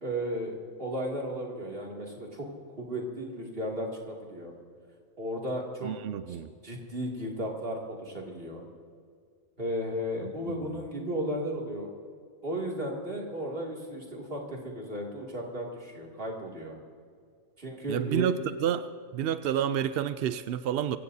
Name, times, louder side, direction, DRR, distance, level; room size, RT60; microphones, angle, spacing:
voice 1, 0.0-2.5 2.8-4.5 5.2-5.9 6.6-8.6 9.6-11.9 12.4-16.8 17.6-18.3, equal, 40° right, -2 dB, 2.7 m, -34 dB
voice 2, 5.8-6.5 10.2-10.6 17.9-18.3 18.6-21.0, right 10 dB, 65° right, 12 dB, 0.6 m, -30 dB
24.0 x 16.0 x 2.7 m, 2.1 s
omnidirectional pair, 1.5 m